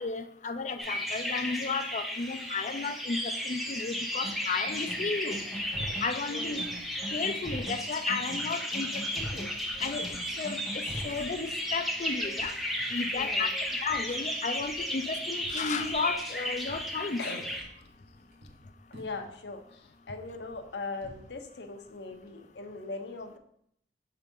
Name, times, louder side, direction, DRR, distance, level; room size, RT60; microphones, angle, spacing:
voice 1, 0.0-5.4 6.0-6.6 7.1-9.5 9.8-12.5 12.9-13.5 13.8-17.2, left 4 dB, 45° left, 8 dB, 0.5 m, -33 dB
sound 1, 0.8-17.6, equal, ahead, 0.6 m, -34 dB
sound 2, 4.2-4.3 4.7-5.0 5.3-6.1 6.4-6.7 7.0-7.8 8.1-8.5 8.7-9.5 9.8-10.1 10.4-11.1, equal, 20° left, 1.9 m, -39 dB
sound 3, 4.2-4.6 4.9-5.7 6.0-6.1 6.4-7.2 7.5-8.8 9.1-16.9 17.5-18.6 18.9-19.4 19.7-21.3 21.7-21.8 22.1-22.3, equal, 55° right, 1.4 m, -55 dB
voice 2, 6.3-6.6 13.1-13.5 17.2-17.5 17.8-18.5 18.9-23.4, left 3 dB, 70° left, 5 dB, 0.8 m, -40 dB
5.6 x 3.6 x 5.2 m, 0.70 s
head